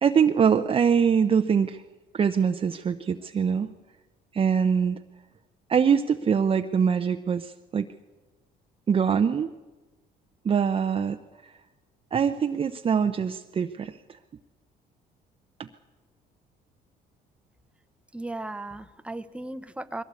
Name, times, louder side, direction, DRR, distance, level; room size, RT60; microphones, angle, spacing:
voice 1, 0.0-1.8 2.1-3.7 4.3-5.0 5.7-7.9 8.9-9.5 10.4-11.2 11.4-11.5 12.1-14.2 15.6-15.7, right 7 dB, 35° right, 7 dB, 0.7 m, -23 dB
voice 2, 18.1-20.0, right 2 dB, 5° right, 11 dB, 0.9 m, -36 dB
21.5 x 17.0 x 8.3 m, 1.2 s
cardioid pair, 110°, 17 cm